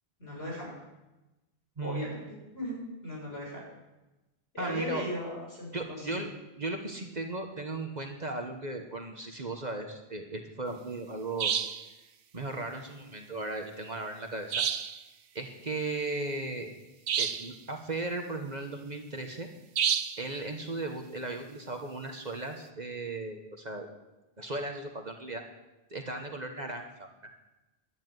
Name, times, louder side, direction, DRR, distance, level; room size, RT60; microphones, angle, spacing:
voice 1, 0.2-0.7 1.8-3.6 4.5-5.7 6.0-6.2, left 1 dB, 75° left, -3 dB, 7.3 m, -37 dB
voice 2, 1.8-2.1 4.6-5.0 5.7-6.3 6.6-11.5 12.3-14.6 15.3-16.7 17.2-19.5 20.2-23.9 24.4-25.4 25.9-27.1, right 2 dB, 45° right, 3 dB, 1.5 m, -36 dB
sound 1, 11.4-11.9 14.5-15.0 17.1-17.6 19.8-20.3, right 8 dB, 85° right, 1.0 m, -29 dB
11.5 x 10.5 x 9.3 m, 1.0 s
omnidirectional pair, 1.1 m